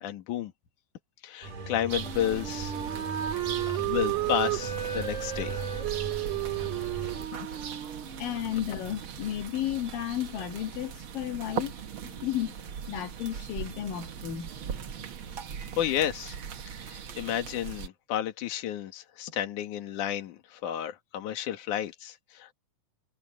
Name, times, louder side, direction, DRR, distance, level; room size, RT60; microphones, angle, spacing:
voice 1, 0.0-0.5 1.2-2.7 3.8-5.6 7.4-7.5 15.8-16.3 16.9-22.5, left 11 dB, 65° left, 3.1 m, -31 dB
sound 1, 1.4-7.3, right 3 dB, 80° right, 7.8 m, -40 dB
sound 2, 1.9-17.9, right 7 dB, 55° right, 1.6 m, -40 dB
Wind instrument woodwind instrument, 2.0-8.8, right 13 dB, 40° right, 2.5 m, -33 dB
voice 2, 8.2-11.7 12.0-12.6 12.9-14.5, left 11 dB, 85° left, 3.3 m, -33 dB
omnidirectional pair, 3.9 m